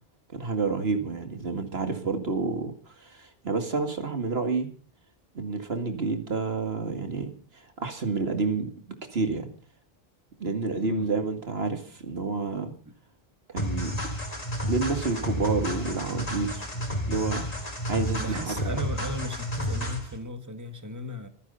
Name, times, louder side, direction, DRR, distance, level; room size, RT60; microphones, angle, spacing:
voice 1, 0.3-4.7 5.3-8.7 9.1-9.5 10.4-12.7 13.5-14.0 14.6-16.7 17.1-17.5 17.9-18.8, right 4 dB, 75° right, 2.5 m, -29 dB
sound 1, 13.6-20.2, equal, 40° left, 3.6 m, -31 dB
voice 2, 18.2-21.3, left 1 dB, 15° right, 1.9 m, -36 dB
26.5 x 9.7 x 5.6 m
omnidirectional pair, 1.0 m